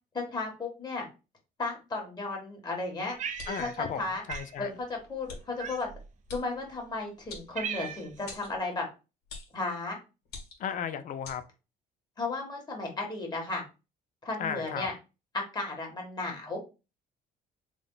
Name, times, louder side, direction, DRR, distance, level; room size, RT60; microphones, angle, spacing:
voice 1, 0.1-1.1 1.6-3.2 3.5-4.2 4.6-5.9 6.3-8.9 9.5-10.0 12.2-13.6 14.2-14.9 15.3-16.6, left 3 dB, 25° left, 1.6 m, -34 dB
Cat, 3.2-4.0 4.3-4.5 5.6-6.1 6.8-6.9 7.2-8.2, right 7 dB, 45° right, 0.6 m, -38 dB
sound 1, 3.4-3.8 4.3-4.4 5.3-5.4 6.3-6.5 7.3-7.9 8.3-8.5 9.3-9.6 10.3-10.7 11.2-11.4, left 3 dB, 70° left, 1.5 m, -43 dB
voice 2, 3.5-4.0 4.3-4.7 10.6-11.4 14.4-14.9, left 8 dB, 50° left, 0.5 m, -34 dB
3.5 x 2.2 x 3.8 m
cardioid pair, 110°, 17 cm